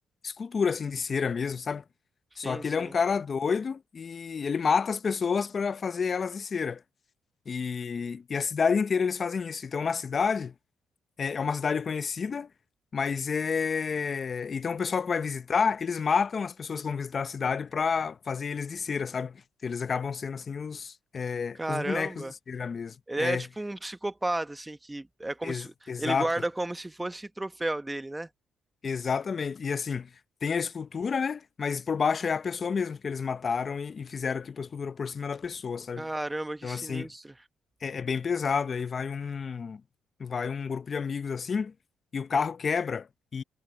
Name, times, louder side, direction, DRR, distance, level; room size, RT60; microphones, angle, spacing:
voice 1, 0.2-1.8 2.4-6.8 7.5-10.5 11.2-12.5 12.9-23.5 25.4-26.3 28.8-30.1 30.4-36.1 36.6-37.1 37.8-39.8 40.2-41.7 42.1-43.4, left 5 dB, 40° left, 0.8 m, -30 dB
voice 2, 2.4-2.9 21.6-22.3 23.1-25.7 26.0-28.3 36.0-37.3, right 2 dB, 15° right, 1.1 m, -33 dB
cardioid pair, 90°, 0 cm